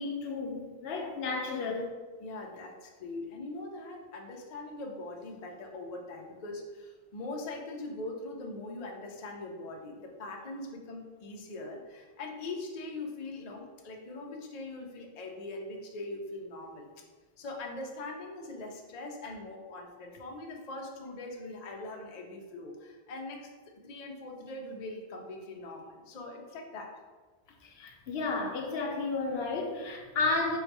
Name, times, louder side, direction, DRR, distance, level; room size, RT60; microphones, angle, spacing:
voice 1, 0.0-1.9 27.6-30.6, left 3 dB, 75° left, 2 dB, 0.9 m, -32 dB
voice 2, 1.4-1.8 2.2-16.9 17.4-23.5 23.8-26.9, left 2 dB, 45° left, 1 dB, 0.6 m, -41 dB
3.9 x 2.7 x 4.5 m, 1.3 s
omnidirectional pair, 1.1 m